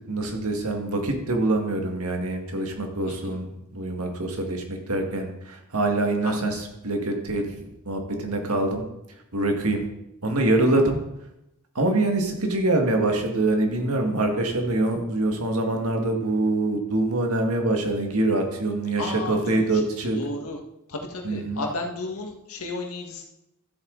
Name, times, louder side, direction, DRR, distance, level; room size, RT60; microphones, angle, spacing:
voice 1, 0.1-8.8 9.3-9.9 10.2-11.0 11.8-20.2 21.2-21.6, right 2 dB, 90° right, 3 dB, 1.8 m, -25 dB
voice 2, 3.0-3.4 6.2-6.6 19.0-20.6 20.9-23.3, left 2 dB, 90° left, 2 dB, 1.6 m, -34 dB
13.0 x 8.0 x 3.9 m, 0.87 s
head